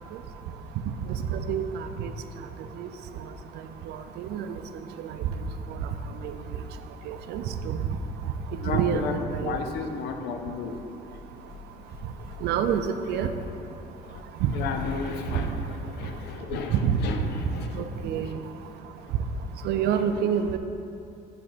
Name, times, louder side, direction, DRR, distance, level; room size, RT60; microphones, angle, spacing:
voice 1, 1.3-1.6 2.0-2.1 2.8-2.9 4.2-4.5 7.1-7.8 8.7-9.6 12.4-12.8 13.1-13.3 14.4-14.5 16.7-17.0 17.7-18.3 19.6-20.6, right 8 dB, 75° right, 8 dB, 0.4 m, -26 dB
voice 2, 8.6-10.8 14.1-14.2 14.5-17.9, left 5 dB, 80° left, 5 dB, 0.6 m, -33 dB
7.6 x 3.4 x 4.2 m, 2.8 s
cardioid pair, 110°, 17 cm